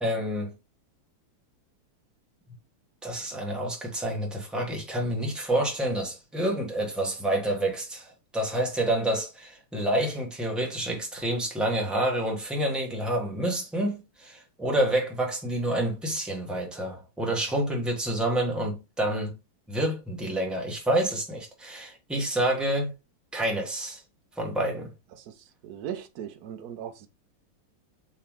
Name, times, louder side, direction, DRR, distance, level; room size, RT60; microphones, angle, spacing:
voice 1, 0.0-0.5 3.0-19.3 19.7-22.9 23.3-24.0 24.4-24.9, right 1 dB, ahead, 0.5 m, -28 dB
voice 2, 25.6-27.1, right 9 dB, 75° right, 0.8 m, -38 dB
4.7 x 3.1 x 3.6 m
omnidirectional pair, 2.4 m